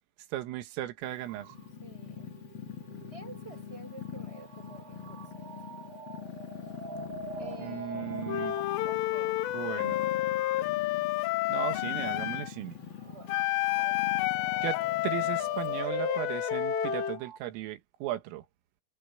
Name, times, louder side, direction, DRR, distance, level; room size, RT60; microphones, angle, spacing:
voice 1, 0.3-1.5 7.6-8.6 9.5-10.0 11.5-12.8 14.6-18.5, right 14 dB, 90° right, 4.1 m, -36 dB
Purr, 1.0-15.8, left 8 dB, 70° left, 1.1 m, -44 dB
sound 1, 1.3-10.6 11.3-11.5 13.0-17.4, right 3 dB, 60° right, 2.7 m, -43 dB
voice 2, 1.8-2.3 3.1-5.2 7.4-8.5 8.8-9.4 9.7-10.4 13.0-13.4 13.8-14.7, right 3 dB, 10° right, 7.6 m, -49 dB
Wind instrument woodwind instrument, 8.3-12.5 13.3-17.2, left 18 dB, 90° left, 2.5 m, -30 dB
omnidirectional pair, 5.7 m